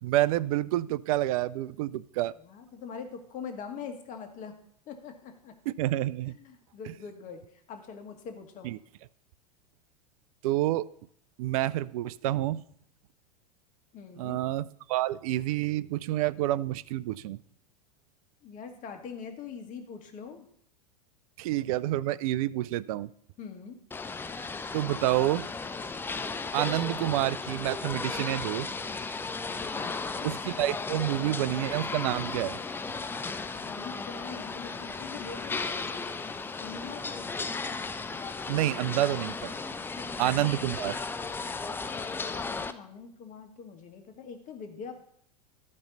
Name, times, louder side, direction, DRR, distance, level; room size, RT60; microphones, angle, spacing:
voice 1, 0.0-2.3 5.7-6.4 8.6-8.8 10.4-10.9 11.4-12.6 14.2-17.4 21.4-23.1 24.7-25.5 26.5-28.7 30.2-32.6 38.5-39.5 40.2-41.0, right 15 dB, 60° right, 18 dB, 0.4 m, -28 dB
voice 2, 2.4-4.6 4.9-5.5 6.3-8.7 13.9-14.4 18.4-20.5 23.4-23.8 29.7-30.4 33.5-36.1 36.6-37.3 39.7-40.5 42.2-44.9, left 6 dB, 40° left, 5 dB, 1.5 m, -43 dB
sound 1, 23.9-42.7, left 4 dB, 10° left, 0.4 m, -35 dB
13.0 x 5.4 x 3.9 m, 0.66 s
hypercardioid pair, 90°, 20 cm